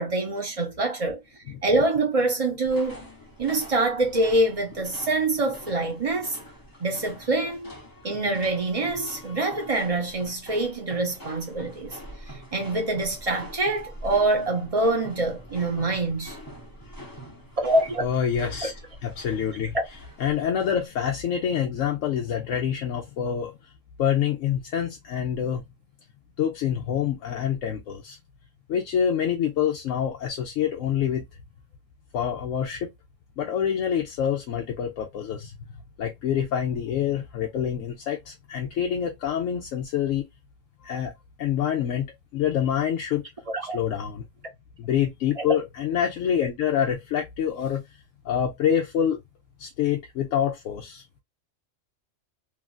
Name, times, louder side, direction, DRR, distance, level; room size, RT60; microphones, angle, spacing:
voice 1, 0.0-3.1 3.4-6.4 6.8-7.7 8.0-12.0 12.3-16.4 17.6-18.0 18.6-18.7 19.7-19.8 43.5-43.8 45.4-45.5, right 2 dB, 30° right, 0.9 m, -25 dB
sound 1, 2.6-20.9, equal, 20° left, 0.8 m, -44 dB
voice 2, 18.0-18.7 19.0-19.8 20.2-23.5 24.0-25.6 26.4-28.2 28.7-31.2 32.1-32.9 33.4-35.6 36.0-40.2 40.8-41.1 41.4-42.1 42.3-43.2 43.7-44.2 44.8-47.8 48.2-49.2 49.6-51.0, left 9 dB, 85° left, 1.0 m, -26 dB
3.1 x 2.4 x 2.3 m
omnidirectional pair, 1.3 m